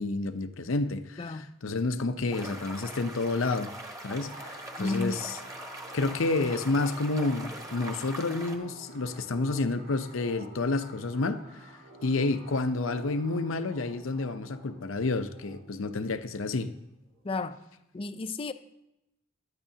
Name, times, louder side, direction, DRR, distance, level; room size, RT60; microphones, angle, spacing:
voice 1, 0.0-3.7 4.0-5.4 5.9-11.7 12.0-16.7, left 3 dB, 80° left, 0.7 m, -30 dB
sound 1, 2.3-8.6, right 1 dB, 15° right, 1.2 m, -42 dB
sound 2, 4.2-17.4, right 1 dB, 90° right, 5.0 m, -49 dB
voice 2, 4.8-5.2 17.2-17.6 17.9-18.5, left 3 dB, 30° left, 0.5 m, -32 dB
16.0 x 11.5 x 2.8 m
head